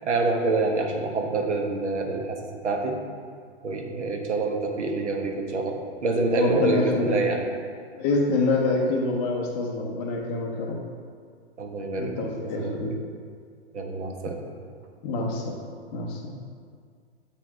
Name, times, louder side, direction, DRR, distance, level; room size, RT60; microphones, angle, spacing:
voice 1, 0.0-3.0 3.6-7.4 11.6-12.8 13.7-14.4, right 3 dB, 85° right, 3 dB, 1.2 m, -27 dB
voice 2, 6.4-7.2 8.0-10.8 12.0-12.9 15.0-15.6 15.9-16.4, left 3 dB, 20° left, 0 dB, 0.5 m, -26 dB
7.2 x 4.5 x 4.6 m, 2.1 s
hypercardioid pair, 150°, 34 cm